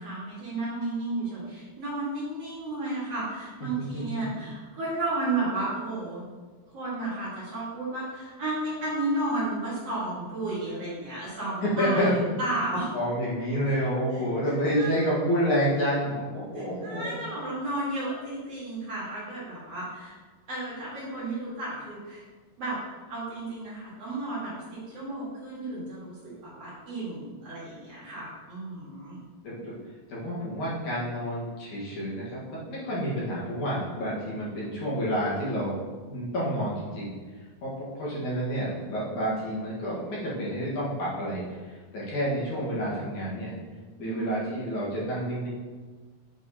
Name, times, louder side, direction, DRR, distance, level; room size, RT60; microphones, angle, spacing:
voice 1, 0.0-6.2 6.7-12.9 14.1-14.2 14.7-14.9 16.5-20.1 20.5-22.2 22.6-22.8 23.1-29.2 44.0-44.5, right 2 dB, 50° right, -8 dB, 2.4 m, -33 dB
voice 2, 11.6-12.3 12.9-17.2 29.4-29.7 30.1-35.8 36.1-37.1 37.6-43.6 44.0-45.5, equal, 60° left, -7 dB, 2.7 m, -29 dB
7.8 x 6.0 x 2.8 m, 1.4 s
omnidirectional pair, 4.0 m